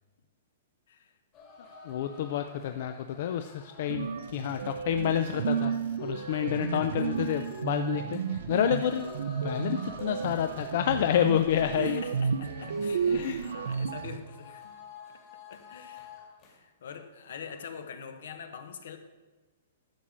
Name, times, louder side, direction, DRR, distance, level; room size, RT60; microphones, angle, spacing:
sound 1, 1.3-16.5 16.9-17.0 17.3-17.7, left 5 dB, 25° left, 1.9 m, -51 dB
voice 1, 1.8-12.0 13.1-13.4, left 10 dB, 45° left, 8 dB, 0.4 m, -29 dB
sound 2, 3.9-14.2, right 6 dB, 70° right, 0.6 m, -32 dB
voice 2, 6.7-7.3 11.8-14.8 15.5-16.1 16.4-19.0, left 7 dB, 65° left, 8 dB, 1.1 m, -44 dB
11.5 x 7.3 x 5.0 m, 1.2 s
hypercardioid pair, 175°, 0 cm